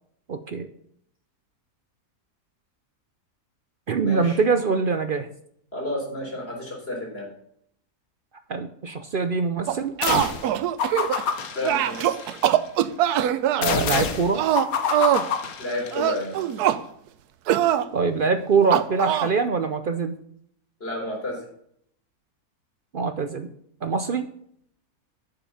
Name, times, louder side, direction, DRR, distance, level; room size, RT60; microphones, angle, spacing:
voice 1, 0.3-0.7 3.9-5.3 8.5-9.9 13.5-14.4 17.9-20.1 22.9-23.5 23.8-24.3, right 5 dB, 60° right, 9 dB, 0.5 m, -23 dB
voice 2, 4.0-4.4 5.7-7.3 11.5-12.1 15.6-16.3 20.8-21.4, left 1 dB, 40° left, -1 dB, 4.0 m, -30 dB
sound 1, 9.7-11.3 11.7-13.6 14.4-15.3 15.9-16.8 17.5-17.9 18.7-19.3, right 11 dB, 85° right, 1.2 m, -22 dB
sound 2, 10.0-10.5 10.8-12.5 13.6-16.2, left 6 dB, 70° left, 1.4 m, -27 dB
8.9 x 6.9 x 7.1 m, 0.69 s
omnidirectional pair, 1.6 m